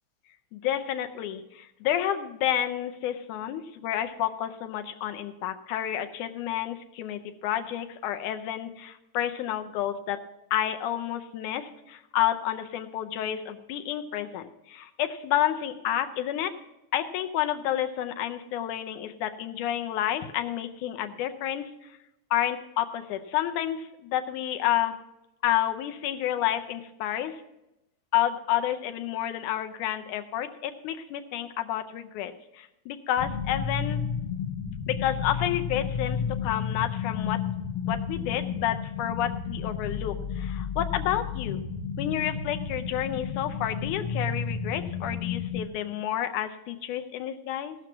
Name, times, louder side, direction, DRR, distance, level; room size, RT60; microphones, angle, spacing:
voice 1, 0.5-10.2 10.5-16.5 16.9-21.7 22.3-24.9 25.4-27.4 28.1-34.0 34.9-37.4 37.9-41.6 42.0-47.8, left 11 dB, 85° left, 8 dB, 2.2 m, -30 dB
sound 1, 33.2-45.7, left 7 dB, 65° left, 1.5 m, -32 dB
17.0 x 6.0 x 5.9 m, 0.90 s
omnidirectional pair, 3.5 m